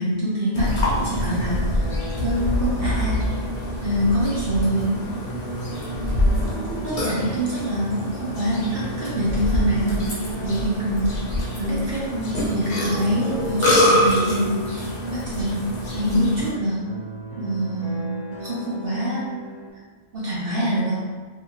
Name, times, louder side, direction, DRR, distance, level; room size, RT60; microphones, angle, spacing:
voice 1, 0.0-1.8 2.2-3.3 3.8-5.0 6.0-11.2 11.6-15.7 15.9-16.9 17.4-19.4 20.1-21.1, equal, 55° right, -7 dB, 0.8 m, -25 dB
Burping eructation, 0.5-16.5, left 1 dB, 50° left, 0.8 m, -25 dB
sound 1, 0.9-19.7, equal, 80° left, 1.0 m, -38 dB
2.6 x 2.4 x 2.8 m, 1.4 s
omnidirectional pair, 1.3 m